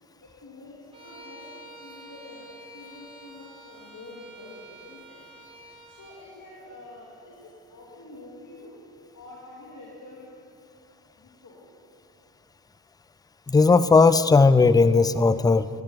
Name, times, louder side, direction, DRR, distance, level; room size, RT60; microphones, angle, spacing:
voice 1, 0.2-0.7 1.0-5.2 5.9-8.7 9.1-10.3 11.2-11.6, left 2 dB, 45° left, -5 dB, 2.6 m, -46 dB
Bowed string instrument, 0.9-6.3, right 1 dB, 10° right, 2.4 m, -48 dB
voice 2, 13.5-15.7, left 4 dB, 10° left, 15 dB, 0.4 m, -17 dB
11.5 x 11.0 x 5.7 m, 2.6 s
hypercardioid pair, 50°, 44 cm